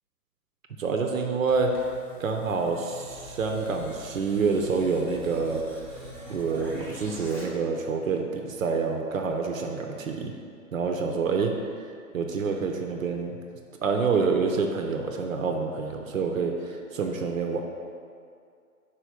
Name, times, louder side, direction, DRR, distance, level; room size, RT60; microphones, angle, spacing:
voice 1, 0.8-1.7 2.2-5.9 6.3-10.3 10.7-11.8 12.1-13.3 13.8-17.6, right 4 dB, 60° right, 3 dB, 0.8 m, -27 dB
sound 1, 1.2-7.4, left 1 dB, 5° left, 0.8 m, -44 dB
5.1 x 4.4 x 5.8 m, 2.3 s
figure-of-eight pair, 120°, 45 cm